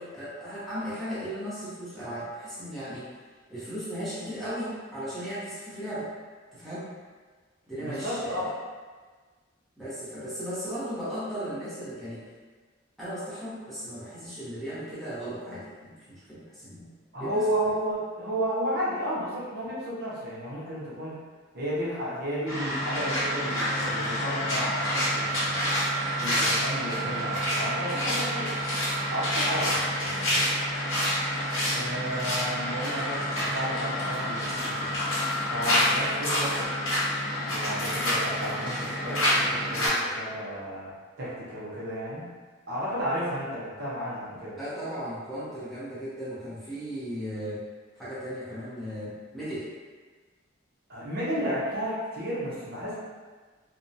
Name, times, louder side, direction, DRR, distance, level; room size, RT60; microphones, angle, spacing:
voice 1, 0.0-3.1 3.5-6.1 6.5-6.9 7.7-8.5 9.8-12.2 13.0-17.7 20.8-20.9 44.6-47.6 48.0-49.7, equal, ahead, -12 dB, 0.7 m, -36 dB
voice 2, 7.7-8.5 17.1-21.1 21.5-25.7 26.2-28.5 29.1-30.4 31.7-35.0 35.5-36.8 37.5-42.3 42.7-44.6 50.9-53.0, equal, 50° right, -8 dB, 0.7 m, -32 dB
sound 1, 22.5-39.9, equal, 75° left, 0.9 m, -28 dB
2.5 x 2.1 x 2.6 m, 1.4 s
head